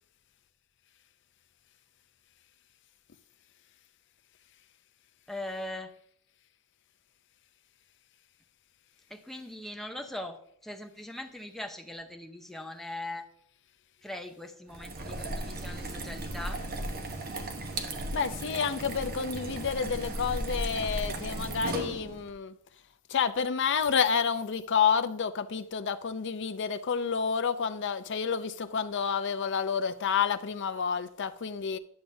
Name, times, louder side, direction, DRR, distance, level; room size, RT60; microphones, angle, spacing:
voice 1, 5.3-5.9 9.1-10.4 10.6-13.3 14.0-16.6, left 1 dB, ahead, 0.7 m, -40 dB
sound 1, 14.7-22.3, right 1 dB, 45° right, 1.0 m, -36 dB
voice 2, 18.1-22.6 23.1-31.8, left 6 dB, 55° left, 0.5 m, -29 dB
10.5 x 6.9 x 2.7 m
head